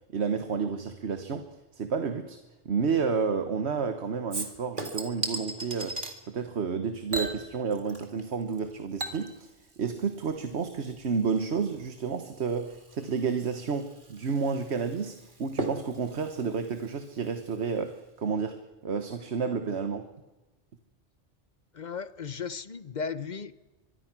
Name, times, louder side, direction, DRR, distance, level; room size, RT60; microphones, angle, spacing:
voice 1, 0.1-2.4 2.6-6.0 6.3-9.5 9.8-20.1, right 5 dB, 65° right, 1.4 m, -31 dB
Chink clink / Liquid, 4.3-6.2 7.1-8.3 8.5-17.6 17.9-18.0, right 2 dB, 45° right, 2.4 m, -39 dB
voice 2, 21.7-23.5, left 5 dB, 40° left, 0.9 m, -35 dB
24.0 x 23.5 x 6.1 m
omnidirectional pair, 1.2 m